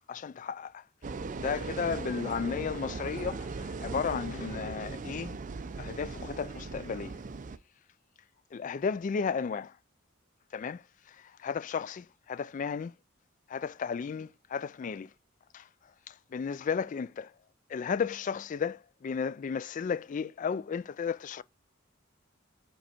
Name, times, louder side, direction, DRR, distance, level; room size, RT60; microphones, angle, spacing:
voice 1, 0.1-0.8 1.4-5.4 5.8-7.2 8.5-9.8 10.5-12.9 13.5-15.1 15.5-15.7 16.1-17.3 17.7-21.4, left 6 dB, 40° left, 0.3 m, -34 dB
sound 1, 1.0-7.6, right 4 dB, 40° right, 0.5 m, -38 dB
5.1 x 4.5 x 4.2 m
head